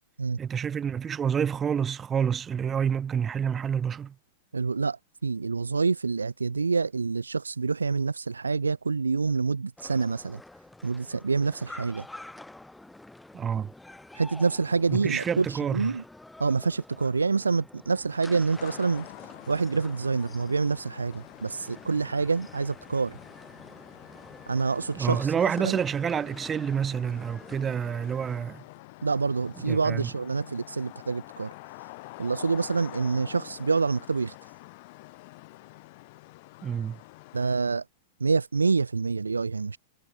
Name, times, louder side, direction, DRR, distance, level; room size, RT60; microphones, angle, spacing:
voice 1, 0.4-4.2 13.3-13.7 14.9-16.0 25.0-28.6 29.7-30.1 36.6-37.0, right 7 dB, 20° right, 3.9 m, -28 dB
voice 2, 4.5-10.4 10.8-12.1 14.1-16.0 16.4-19.1 19.5-23.2 24.5-25.3 25.6-25.7 29.0-31.5 32.2-34.3 37.3-37.8 38.2-39.8, right 4 dB, 90° right, 0.6 m, -27 dB
sound 1, 9.8-28.4, left 2 dB, 5° left, 5.1 m, -48 dB
sound 2, 18.6-37.5, left 23 dB, 50° left, 3.6 m, -47 dB
hypercardioid pair, 105°, 0 cm